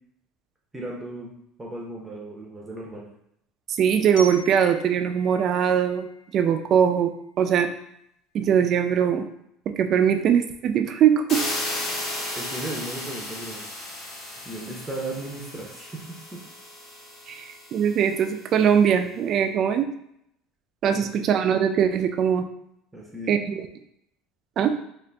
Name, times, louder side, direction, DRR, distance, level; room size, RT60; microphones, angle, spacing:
voice 1, 0.7-1.3 1.6-3.1 12.3-13.7 14.3-16.0 21.0-21.2 22.9-23.3, right 2 dB, 10° right, -2 dB, 0.7 m, -36 dB
voice 2, 3.8-6.1 6.3-7.1 7.4-7.7 8.3-9.3 9.8-11.4 17.3-19.9 20.8-22.4 23.3-23.7 24.6-24.7, right 8 dB, 40° right, 7 dB, 0.4 m, -21 dB
Glockenspiel, 4.2-7.0, equal, 85° left, 1.4 m, -43 dB
sound 1, 11.3-18.1, left 1 dB, 40° left, 1.1 m, -34 dB
3.8 x 2.5 x 3.4 m, 0.76 s
cardioid pair, 140°, 0 cm